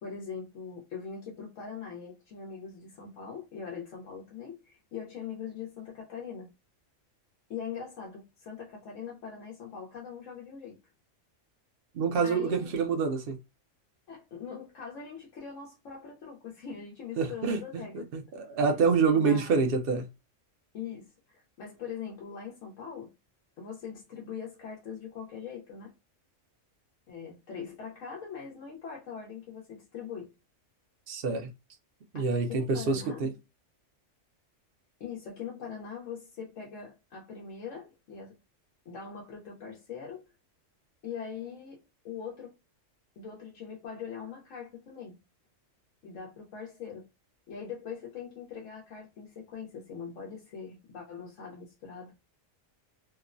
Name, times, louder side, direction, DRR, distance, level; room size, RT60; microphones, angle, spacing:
voice 1, 0.0-6.5 7.5-10.8 12.2-12.7 14.1-18.1 19.1-19.7 20.7-23.1 23.6-25.9 27.1-30.3 32.1-33.3 35.0-38.3 38.9-40.3 41.0-42.5 43.2-45.2 46.0-47.1 47.5-52.1, left 6 dB, 85° left, 1.1 m, -42 dB
voice 2, 11.9-13.4 17.2-17.6 18.3-20.1 31.1-31.5 32.1-33.3, right 5 dB, 60° right, 0.7 m, -26 dB
2.9 x 2.0 x 2.4 m
omnidirectional pair, 1.3 m